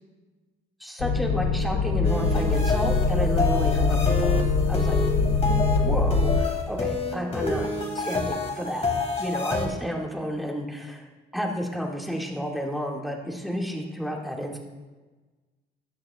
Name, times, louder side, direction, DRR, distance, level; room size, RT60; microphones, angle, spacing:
voice 1, 0.8-7.7 7.9-8.9 9.2-11.1 11.3-14.6, equal, ahead, -1 dB, 2.2 m, -31 dB
sound 1, 1.0-6.4, left 4 dB, 80° left, 0.8 m, -23 dB
sound 2, 2.0-9.7, left 3 dB, 30° left, 2.7 m, -29 dB
14.0 x 10.5 x 2.5 m, 1.3 s
cardioid pair, 90°, 20 cm